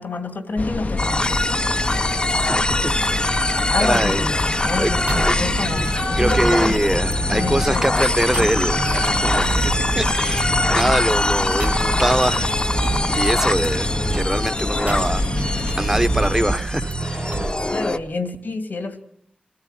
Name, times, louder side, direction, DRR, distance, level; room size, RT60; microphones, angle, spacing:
voice 1, 0.0-1.3 3.7-6.8 7.3-8.1 17.7-18.9, left 3 dB, 80° left, 2.6 m, -28 dB
sound 1, 0.6-16.6, left 3 dB, 55° left, 1.0 m, -27 dB
sound 2, 1.0-18.0, left 2 dB, 30° left, 1.1 m, -24 dB
voice 2, 3.8-4.2 4.8-4.9 5.2-5.3 6.2-12.5 13.1-15.2 15.8-17.5, right 1 dB, 15° right, 1.3 m, -23 dB
sound 3, 5.1-18.1, right 3 dB, 55° right, 1.0 m, -28 dB
25.0 x 14.5 x 9.1 m
wide cardioid pair, 55°, 3 cm